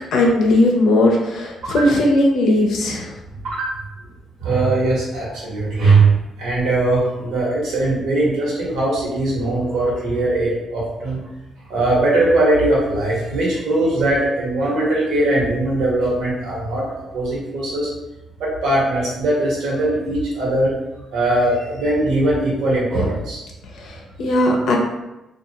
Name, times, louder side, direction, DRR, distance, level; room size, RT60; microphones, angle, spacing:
voice 1, 0.1-3.1 23.8-24.8, left 1 dB, 70° left, 0 dB, 0.6 m, -17 dB
voice 2, 4.4-11.2 11.7-16.8 17.1-17.9 18.4-20.7 21.1-23.4, right 2 dB, 80° right, -5 dB, 1.1 m, -20 dB
2.4 x 2.4 x 2.8 m, 0.98 s
cardioid pair, 90°, 0 cm